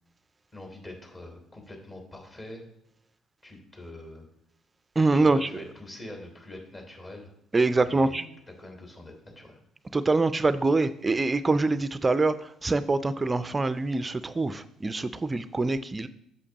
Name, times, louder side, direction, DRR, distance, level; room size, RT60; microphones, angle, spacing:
voice 1, 0.5-2.6 3.4-4.3 5.1-7.3 7.9-8.3 8.6-9.6, left 1 dB, 35° left, 1 dB, 3.2 m, -44 dB
voice 2, 5.0-5.5 7.5-8.2 9.9-12.3 12.6-16.1, right 3 dB, 25° right, 13 dB, 0.4 m, -24 dB
8.4 x 6.7 x 2.9 m, 0.75 s
hypercardioid pair, 50°, 0 cm